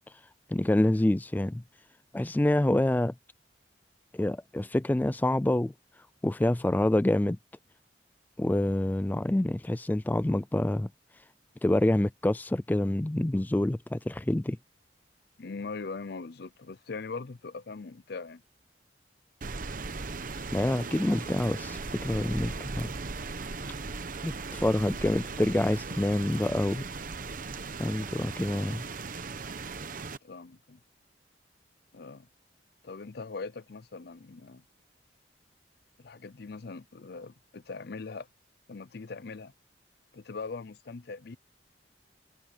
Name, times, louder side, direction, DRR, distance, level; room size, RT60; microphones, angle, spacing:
voice 1, 0.5-1.6 2.1-3.1 4.1-5.7 6.2-7.4 8.4-10.9 11.6-14.6 20.5-22.9 24.2-26.9 27.8-28.8, left 1 dB, 10° left, 0.3 m, -27 dB
voice 2, 15.4-18.4 30.2-30.8 31.9-32.3 32.8-34.6 36.0-38.3 38.7-39.5 40.1-41.4, left 4 dB, 60° left, 0.6 m, -41 dB
Rain, 19.4-30.2, right 4 dB, 50° right, 0.9 m, -38 dB
head